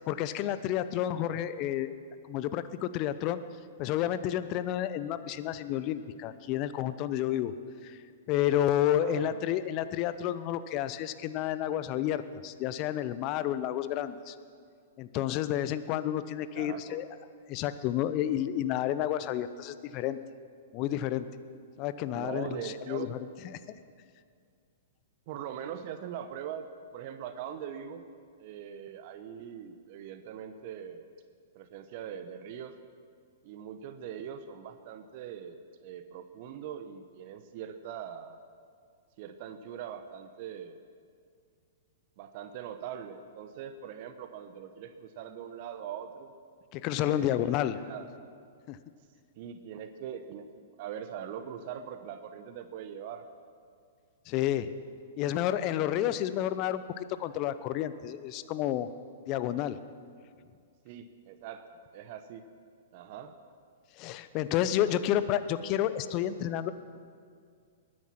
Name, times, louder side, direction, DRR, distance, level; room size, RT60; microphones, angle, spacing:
voice 1, 0.1-1.9 2.3-3.4 3.8-7.5 7.8-8.0 8.3-14.3 15.0-17.1 17.5-20.2 20.7-21.3 21.8-23.3 23.7-23.8 46.7-47.8 48.7-48.8 54.3-54.7 55.2-58.9 59.2-59.8 64.0-66.7, left 11 dB, 40° left, 13 dB, 0.8 m, -30 dB
voice 2, 9.0-9.5 16.3-17.0 22.1-23.1 25.3-26.7 26.9-28.0 28.4-31.1 31.5-32.8 33.4-38.4 39.2-40.8 42.2-46.3 47.0-47.3 47.7-48.1 49.4-53.3 60.8-61.7 61.9-62.4 62.9-63.3, right 9 dB, 50° right, 9 dB, 0.9 m, -42 dB
20.5 x 9.7 x 5.9 m, 2.2 s
hypercardioid pair, 110°, 0 cm